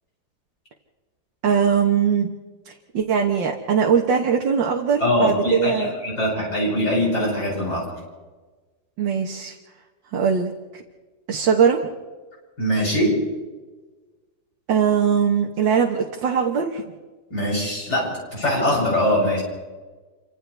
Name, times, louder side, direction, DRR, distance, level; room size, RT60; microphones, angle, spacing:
voice 1, 1.4-2.4 2.7-5.9 9.0-9.6 10.1-10.8 11.3-11.8 14.7-16.9, right 7 dB, 85° right, 1 dB, 2.0 m, -21 dB
voice 2, 5.0-7.9 12.6-13.1 17.3-19.4, equal, 60° left, -4 dB, 8.5 m, -22 dB
29.5 x 25.5 x 3.4 m, 1.3 s
omnidirectional pair, 2.0 m